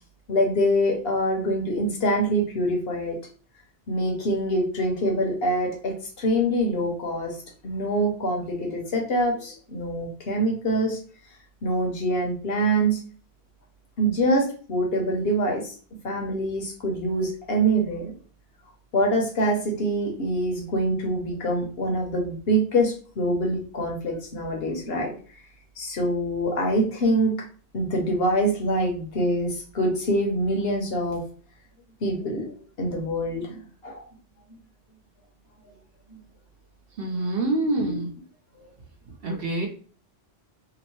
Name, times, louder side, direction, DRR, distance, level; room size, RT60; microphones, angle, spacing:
voice 1, 0.3-3.2 3.9-7.3 7.6-11.0 11.6-13.0 14.0-15.7 16.0-18.1 18.9-25.1 25.8-27.3 27.7-31.2 32.0-32.5 32.8-34.1 36.1-36.2 37.8-37.9, right 1 dB, 60° left, 1 dB, 0.9 m, -25 dB
voice 2, 37.0-38.1 39.2-39.7, right 2 dB, 60° right, 0 dB, 0.8 m, -26 dB
2.8 x 2.0 x 2.9 m, 0.41 s
omnidirectional pair, 1.2 m